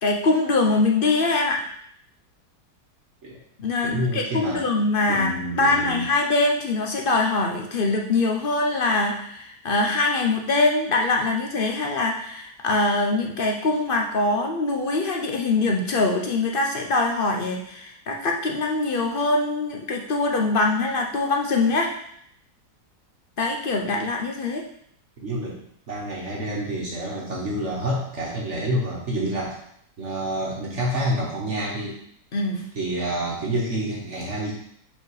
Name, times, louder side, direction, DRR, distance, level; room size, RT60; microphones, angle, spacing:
voice 1, 0.0-1.6 3.6-21.9 23.4-24.6 32.3-32.7, left 3 dB, 50° left, 1 dB, 0.6 m, -23 dB
voice 2, 3.8-4.7 5.1-6.1 25.2-25.6 25.9-29.6 30.0-32.0 32.7-34.5, right 1 dB, 45° right, -3 dB, 1.4 m, -28 dB
5.3 x 4.3 x 4.7 m, 0.69 s
omnidirectional pair, 1.8 m